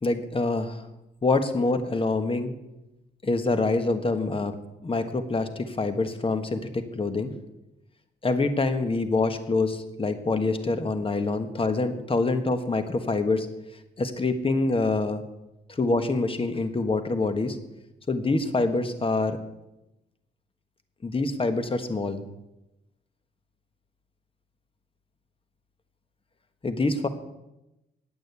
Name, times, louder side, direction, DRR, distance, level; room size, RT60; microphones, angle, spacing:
voice 1, 0.0-0.8 1.2-2.5 3.2-4.5 4.8-7.3 8.2-13.5 14.0-15.2 15.7-17.6 18.1-19.4 21.0-22.2 26.6-27.1, left 3 dB, 30° left, 9 dB, 1.4 m, -26 dB
9.0 x 8.9 x 8.3 m, 0.94 s
cardioid pair, 75°, 18 cm